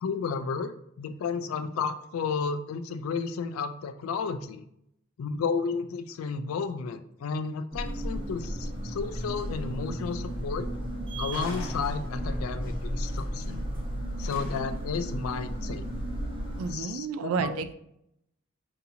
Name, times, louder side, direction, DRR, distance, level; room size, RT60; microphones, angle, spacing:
voice 1, 0.0-4.6 5.2-10.7 11.2-13.6 14.2-15.9 16.7-17.6, left 5 dB, 80° left, 10 dB, 0.3 m, -32 dB
sound 1, 7.7-16.7, equal, 25° right, 0.9 m, -34 dB
sound 2, 11.3-12.5 14.2-15.0, left 2 dB, 65° left, 0.8 m, -43 dB
voice 2, 16.6-17.7, right 5 dB, 90° right, 11 dB, 0.3 m, -30 dB
4.0 x 2.7 x 2.7 m, 0.76 s
head